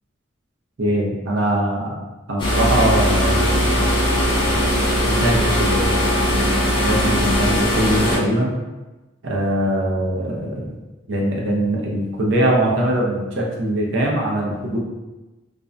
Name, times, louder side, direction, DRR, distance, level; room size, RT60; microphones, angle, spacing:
voice 1, 0.8-2.0 2.3-3.9 4.4-4.6 5.1-8.5 9.2-10.7 11.1-14.8, right 1 dB, 70° right, -2 dB, 0.5 m, -22 dB
sound 1, 2.4-8.2, equal, 25° left, 0.4 m, -19 dB
2.5 x 2.1 x 2.4 m, 1.1 s
head